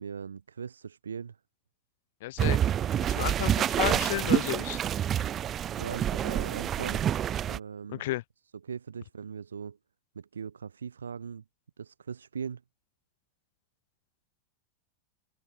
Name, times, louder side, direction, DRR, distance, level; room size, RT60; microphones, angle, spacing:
voice 1, 0.0-1.4 5.8-7.1 7.5-8.1 8.6-9.8 10.2-11.4 11.8-12.6, right 6 dB, 70° right, 5.6 m, -39 dB
voice 2, 2.2-2.6 3.1-4.8 7.9-8.2, left 17 dB, 55° left, 4.5 m, -32 dB
sound 1, 2.4-7.6, right 10 dB, 25° right, 3.2 m, -28 dB
open air
figure-of-eight pair, 90°, 0 cm